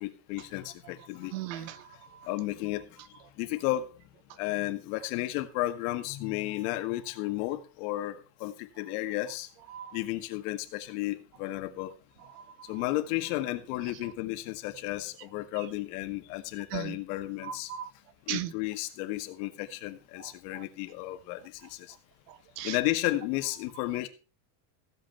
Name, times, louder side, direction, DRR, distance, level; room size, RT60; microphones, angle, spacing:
voice 1, 0.0-1.3 2.2-2.8 3.4-3.9 4.4-9.5 9.9-11.9 12.7-17.7 18.3-21.4 21.7-21.9 22.6-24.1, left 16 dB, 65° left, 7 dB, 2.0 m, -33 dB
voice 2, 1.3-1.9 9.7-10.0 12.3-12.7 16.7-17.0 17.4-17.9 18.3-18.5 20.2-20.6 22.3-22.8, right 12 dB, 90° right, 15 dB, 1.3 m, -38 dB
15.5 x 8.1 x 4.5 m, 0.34 s
cardioid pair, 175°, 48 cm